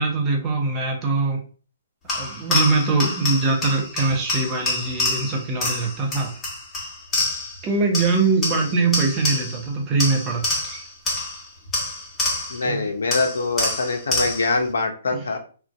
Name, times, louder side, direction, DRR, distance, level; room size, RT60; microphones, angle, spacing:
voice 1, 0.0-1.4 2.1-6.3 7.6-10.8 12.6-12.9 15.1-15.2, right 3 dB, 25° right, 1 dB, 0.7 m, -22 dB
sound 1, 2.1-7.6 7.9-9.7 10.0-12.7 13.1-14.6, left 2 dB, 15° left, 1.1 m, -27 dB
voice 2, 12.5-15.4, left 3 dB, 75° left, 5 dB, 0.5 m, -24 dB
2.5 x 2.2 x 2.3 m, 0.39 s
hypercardioid pair, 130°, 0 cm